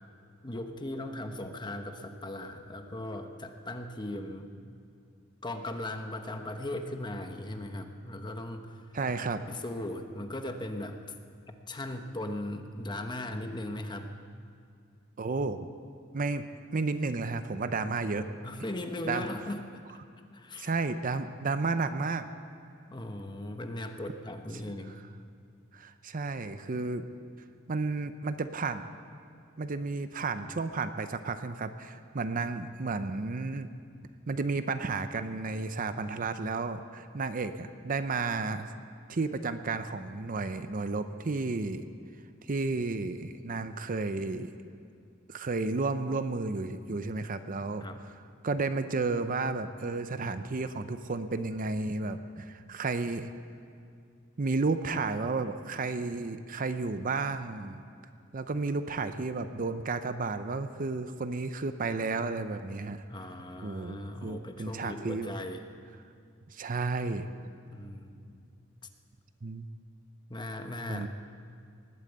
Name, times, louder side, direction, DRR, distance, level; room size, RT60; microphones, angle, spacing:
voice 1, 0.4-4.5 5.4-8.9 9.5-11.0 11.5-14.1 18.4-19.8 20.3-20.7 22.9-25.0 47.8-48.0 63.1-65.6 67.7-68.4 70.3-71.1, left 1 dB, 25° left, 6 dB, 1.0 m, -38 dB
voice 2, 8.9-9.4 15.2-15.7 16.1-16.4 16.7-18.2 19.1-19.2 20.6-22.2 25.7-27.0 27.7-28.8 29.6-33.7 34.3-38.7 39.1-41.8 42.5-44.5 45.3-47.9 48.4-53.3 54.4-57.8 58.3-63.0 63.6-65.3 66.5-67.3 69.4-69.7 70.9-71.1, right 3 dB, 45° right, 10 dB, 0.6 m, -32 dB
19.0 x 8.9 x 8.0 m, 2.4 s
head